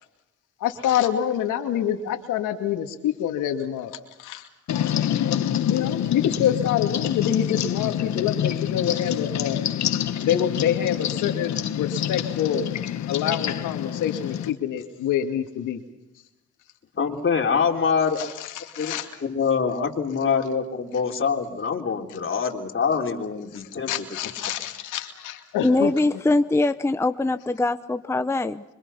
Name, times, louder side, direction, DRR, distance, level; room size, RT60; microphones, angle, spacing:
voice 1, 0.6-4.5 4.8-4.9 5.6-9.6 10.2-12.7 13.1-15.8 18.2-19.1 23.9-25.9, left 10 dB, 90° left, 2.4 m, -26 dB
sound 1, 4.7-14.5, left 10 dB, 65° left, 1.5 m, -27 dB
voice 2, 16.9-18.2 18.8-18.9 19.2-23.9, left 6 dB, 40° left, 3.7 m, -24 dB
voice 3, 25.6-28.6, left 2 dB, 10° left, 0.8 m, -22 dB
26.5 x 24.5 x 5.7 m
cardioid pair, 90°, 30 cm